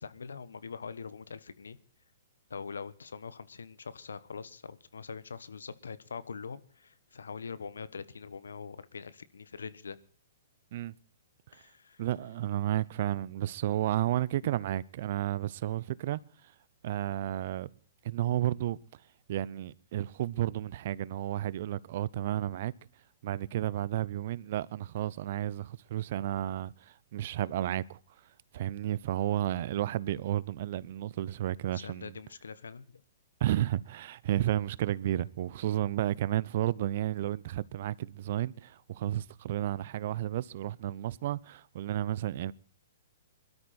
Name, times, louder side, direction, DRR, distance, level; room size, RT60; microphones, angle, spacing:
voice 1, 0.0-1.8 2.5-10.0 11.5-12.0 31.7-33.0, left 5 dB, 80° left, 1.2 m, -43 dB
voice 2, 12.0-16.2 16.8-17.7 18.0-18.8 19.3-22.7 23.2-28.0 28.5-32.1 33.4-42.5, right 13 dB, 55° right, 0.7 m, -32 dB
22.0 x 12.5 x 4.3 m
hypercardioid pair, 125°, 0 cm